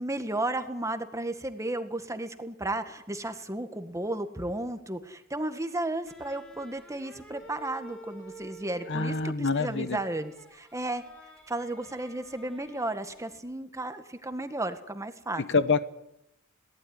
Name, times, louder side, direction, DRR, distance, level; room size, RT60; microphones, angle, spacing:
voice 1, 0.0-11.0 11.5-15.4, right 2 dB, 15° right, 9 dB, 1.7 m, -34 dB
sound 1, 6.0-13.5, right 2 dB, 5° left, 4.8 m, -49 dB
voice 2, 8.9-10.0 15.5-15.9, left 4 dB, 55° left, 13 dB, 1.1 m, -26 dB
22.0 x 18.0 x 9.8 m, 0.83 s
head